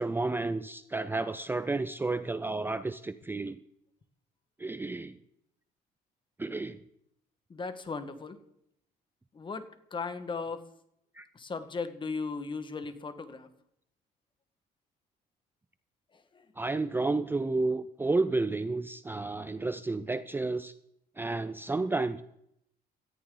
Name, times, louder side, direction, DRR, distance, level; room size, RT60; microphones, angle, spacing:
voice 1, 0.0-3.6 4.6-5.2 6.4-6.8 11.2-11.3 16.6-20.7 21.2-22.2, right 3 dB, 10° right, 13 dB, 0.5 m, -31 dB
voice 2, 7.5-8.4 9.3-10.6 11.3-13.5, left 4 dB, 30° left, 10 dB, 1.6 m, -37 dB
18.5 x 14.0 x 3.9 m, 0.76 s
cardioid pair, 110°, 17 cm